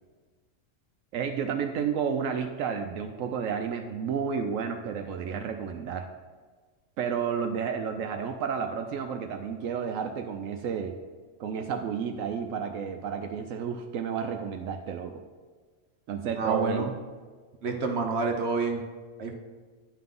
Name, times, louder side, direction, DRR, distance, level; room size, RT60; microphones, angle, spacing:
voice 1, 1.1-6.1 7.0-10.9 11.4-15.2 16.1-16.9, right 7 dB, 80° right, 5 dB, 1.0 m, -31 dB
voice 2, 16.4-16.9 17.6-18.8 19.2-19.3, right 4 dB, 55° right, 3 dB, 1.1 m, -28 dB
10.0 x 5.8 x 3.7 m, 1.4 s
omnidirectional pair, 1.4 m